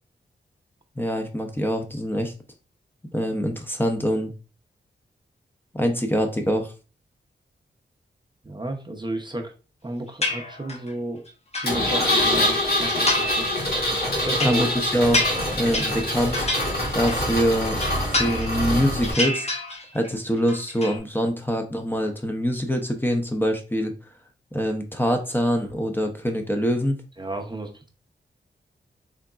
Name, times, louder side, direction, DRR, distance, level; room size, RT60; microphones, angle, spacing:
voice 1, 1.0-2.3 3.1-4.3 5.7-6.7 14.4-15.3 15.6-16.5 16.9-17.8 18.1-19.5 19.9-23.9 24.5-27.0, equal, 10° left, 4 dB, 0.7 m, -24 dB
voice 2, 8.4-9.5 9.8-11.2 11.5-13.5 14.2-14.9 15.6-15.8 27.2-27.9, right 1 dB, 25° right, 3 dB, 0.7 m, -32 dB
sound 1, 10.2-10.9 11.3-12.4 12.9-13.5 13.8-17.3 17.7-18.7 19.0-20.1 20.4-21.0, left 2 dB, 35° left, 1.0 m, -28 dB
Engine, 11.6-19.1, left 1 dB, 55° left, 2.1 m, -25 dB
3.8 x 3.5 x 2.3 m, 0.34 s
cardioid pair, 65°, 19 cm